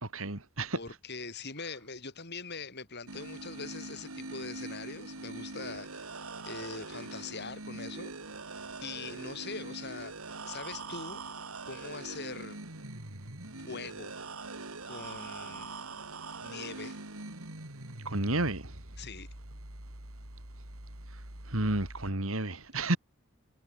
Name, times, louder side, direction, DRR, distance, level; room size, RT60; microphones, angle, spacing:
voice 1, 0.0-0.8 18.0-18.8 21.5-23.0, right 2 dB, 70° right, 3.3 m, -31 dB
voice 2, 0.7-8.1 8.8-11.2 11.7-12.6 13.7-14.2 14.9-15.8 16.4-17.0 19.0-19.3, left 4 dB, 50° left, 7.0 m, -42 dB
sound 1, 3.1-22.1, right 3 dB, 90° right, 3.8 m, -43 dB
head